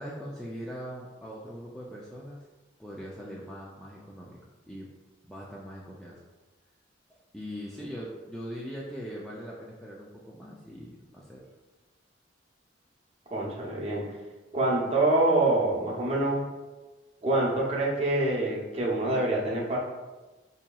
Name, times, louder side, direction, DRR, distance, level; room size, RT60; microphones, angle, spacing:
voice 1, 0.0-2.4 2.8-4.4 4.7-4.9 5.3-6.2 7.1-11.4, equal, ahead, -6 dB, 0.3 m, -41 dB
voice 2, 13.3-14.0 14.5-16.4 17.2-19.8, right 2 dB, 30° right, -4 dB, 0.7 m, -25 dB
4.8 x 2.8 x 2.3 m, 1.2 s
head